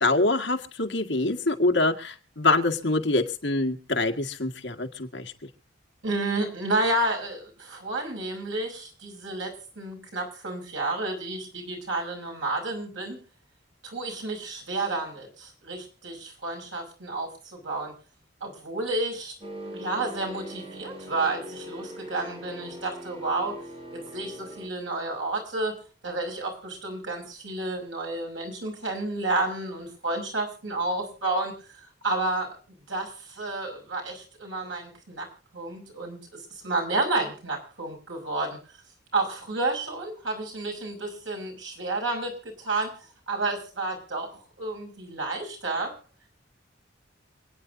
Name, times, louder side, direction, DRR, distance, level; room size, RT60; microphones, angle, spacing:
voice 1, 0.0-5.3, left 2 dB, 70° left, 5 dB, 1.7 m, -25 dB
voice 2, 6.0-13.2 13.8-17.9 18.4-19.3 19.7-23.6 23.9-25.8 26.0-32.6 32.9-35.3 35.5-36.2 36.6-38.6 39.1-45.9, right 2 dB, 90° right, 2 dB, 5.8 m, -31 dB
sound 1, 19.4-24.7, equal, 30° right, 2.4 m, -41 dB
28.0 x 9.5 x 2.7 m, 0.37 s
head